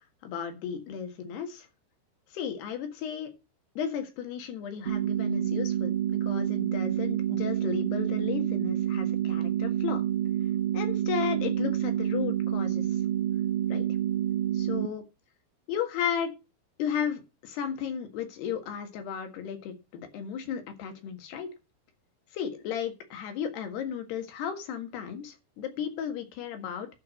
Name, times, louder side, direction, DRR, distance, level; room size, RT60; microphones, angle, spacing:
voice 1, 0.2-1.7 2.3-3.3 3.8-10.0 10.7-12.9 13.7-13.9 14.5-15.0 15.7-16.3 16.8-21.5 22.3-26.9, left 8 dB, 80° left, 7 dB, 3.8 m, -34 dB
sound 1, 4.9-14.9, right 11 dB, 80° right, 3.0 m, -28 dB
11.5 x 4.7 x 7.5 m, 0.28 s
omnidirectional pair, 4.7 m